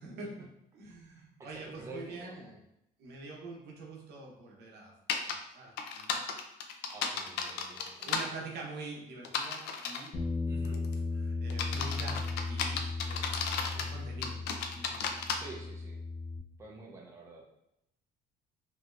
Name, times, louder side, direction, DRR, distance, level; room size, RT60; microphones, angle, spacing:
voice 1, 0.0-2.6 3.0-4.9 5.3-6.2 7.1-10.1 10.6-14.4 14.7-15.1 16.6-16.9, right 3 dB, 75° right, -1 dB, 0.8 m, -46 dB
voice 2, 1.4-2.6 6.9-8.1 10.5-10.8 15.3-16.0 16.6-17.5, right 3 dB, 15° right, -1 dB, 0.5 m, -49 dB
sound 1, 5.1-5.3 5.8-8.3 9.2-10.1 10.6-10.9 11.5-13.9 14.2-15.4, left 6 dB, 80° left, 0.4 m, -34 dB
Bass guitar, 10.1-16.4, left 3 dB, 40° left, 0.8 m, -36 dB
3.1 x 2.8 x 2.4 m, 0.82 s
cardioid pair, 110°, 17 cm